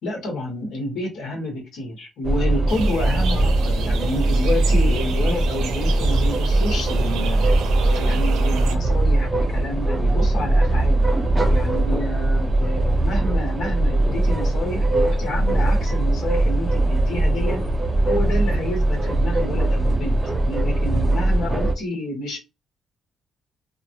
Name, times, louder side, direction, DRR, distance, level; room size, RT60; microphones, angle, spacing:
voice 1, 0.0-7.5 7.8-11.1 11.5-17.7 18.0-22.4, left 1 dB, 80° left, 1.2 m, -29 dB
sound 1, 2.2-21.7, right 2 dB, 20° right, 0.5 m, -20 dB
sound 2, 2.7-8.8, right 7 dB, 85° right, 0.5 m, -33 dB
2.2 x 2.2 x 2.7 m
cardioid pair, 90°, 0 cm